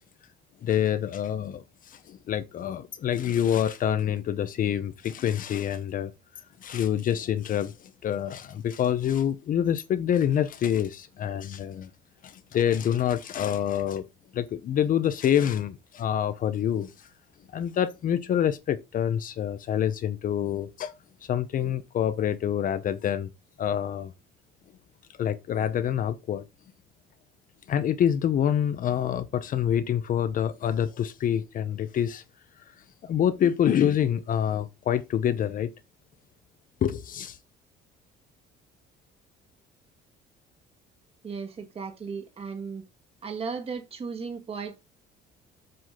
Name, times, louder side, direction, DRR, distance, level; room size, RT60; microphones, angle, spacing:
voice 1, 0.6-6.1 6.6-11.9 12.2-14.1 14.3-17.1 17.5-20.9 21.2-23.3 23.6-24.1 25.2-26.4 27.7-32.2 33.0-35.7 36.8-37.4, left 9 dB, 45° left, 0.8 m, -26 dB
voice 2, 41.2-42.8 43.2-44.8, right 5 dB, 30° right, 1.7 m, -35 dB
7.8 x 6.1 x 3.8 m
cardioid pair, 130°, 19 cm